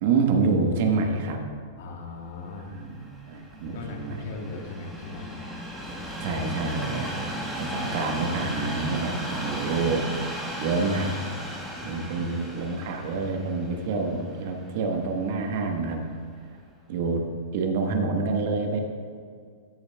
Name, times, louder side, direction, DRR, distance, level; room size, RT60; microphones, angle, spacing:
voice 1, 0.0-1.4 2.7-3.0 3.3-4.3 6.2-7.3 7.5-10.0 10.6-11.1 11.8-16.1 16.9-18.8, right 4 dB, 60° right, 3 dB, 1.2 m, -27 dB
voice 2, 1.8-2.8 3.7-5.4 11.8-12.8, left 3 dB, 65° left, 2 dB, 1.4 m, -39 dB
Train, 2.5-15.7 16.4-16.5, equal, ahead, 1.4 m, -36 dB
13.5 x 6.8 x 2.3 m, 2.1 s
hypercardioid pair, 125°, 0 cm